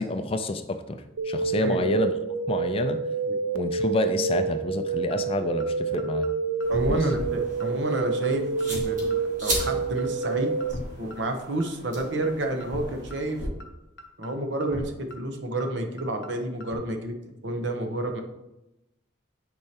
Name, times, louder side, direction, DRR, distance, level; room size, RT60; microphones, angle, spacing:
voice 1, 0.0-2.1 2.5-3.0 3.5-6.3 6.9-7.1, left 2 dB, 30° left, 9 dB, 0.3 m, -28 dB
sound 1, 1.2-10.7, right 5 dB, 85° right, 0.5 m, -28 dB
sound 2, 5.1-5.2 5.6-5.7 6.0-6.3 6.6-6.8 7.1-7.2 7.6-7.7 8.0-8.3 8.6-8.9 9.1-9.2 9.6-9.7 10.0-10.3 10.6-10.9 11.1-11.2 11.6-11.7 12.0-12.3 12.6-12.8 13.1-13.2 13.6-13.7 14.0-14.3 14.6-14.8 15.1-15.2 15.6-15.7 16.0-16.3 16.6-16.8, left 1 dB, 55° left, 0.9 m, -38 dB
sound 3, 6.6-13.5, right 1 dB, 40° right, 2.0 m, -37 dB
voice 2, 6.7-10.5 11.0-13.4 14.2-17.1 17.4-18.2, right 1 dB, 65° right, 5 dB, 0.9 m, -29 dB
9.5 x 4.6 x 2.9 m, 0.94 s
head